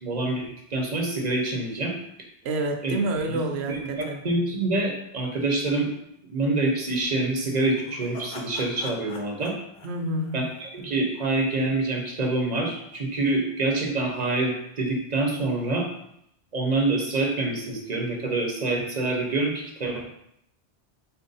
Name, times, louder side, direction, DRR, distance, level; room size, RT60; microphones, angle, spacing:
voice 1, 0.0-1.9 2.8-2.9 3.3-3.4 3.7-5.9 6.2-9.5 10.3-15.9 16.5-20.0, right 2 dB, 45° right, 1 dB, 0.8 m, -26 dB
voice 2, 2.4-4.2 9.8-10.5, right 2 dB, 85° right, 4 dB, 0.9 m, -28 dB
sound 1, 6.8-11.0, left 2 dB, 80° left, 1.0 m, -44 dB
4.2 x 2.6 x 3.9 m, 0.75 s
omnidirectional pair, 1.1 m